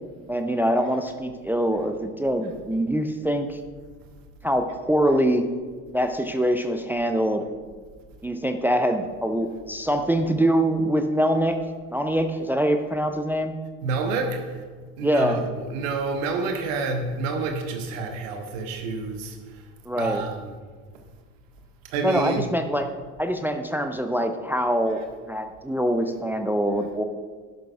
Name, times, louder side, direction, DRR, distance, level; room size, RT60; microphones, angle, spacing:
voice 1, 0.3-3.6 4.4-5.4 5.9-7.4 8.2-11.6 11.9-13.6 15.0-15.4 19.9-20.2 22.0-22.9 23.2-27.0, equal, 5° right, 7 dB, 0.5 m, -24 dB
voice 2, 13.8-14.4 15.0-19.4 20.0-20.5 21.9-22.5, right 4 dB, 60° right, 5 dB, 1.2 m, -28 dB
11.5 x 11.0 x 2.4 m, 1.5 s
figure-of-eight pair, 60°, 44 cm